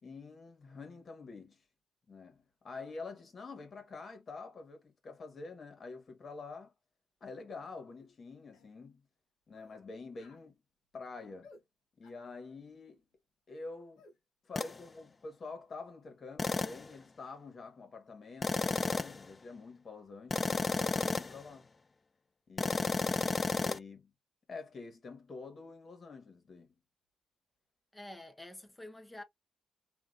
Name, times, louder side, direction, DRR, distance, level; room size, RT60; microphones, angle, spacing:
voice 1, 0.0-1.6 2.1-6.7 7.2-9.0 9.5-10.6 10.9-11.5 12.0-13.0 13.5-14.0 14.4-21.7 22.5-24.1 24.5-26.7, left 4 dB, 50° left, 1.6 m, -47 dB
sound 1, 8.0-8.1 8.5-8.7 9.5-9.8 10.1-10.5 11.4-11.6 12.0-12.3 14.0-14.2, left 3 dB, 80° left, 1.0 m, -59 dB
sound 2, 14.6-14.8 16.4-16.9 18.4-19.3 20.3-21.4 22.6-23.8, left 3 dB, 35° left, 0.3 m, -32 dB
voice 2, 27.9-29.2, left 1 dB, 15° left, 1.0 m, -48 dB
3.7 x 2.7 x 2.5 m
supercardioid pair, 50°, 0 cm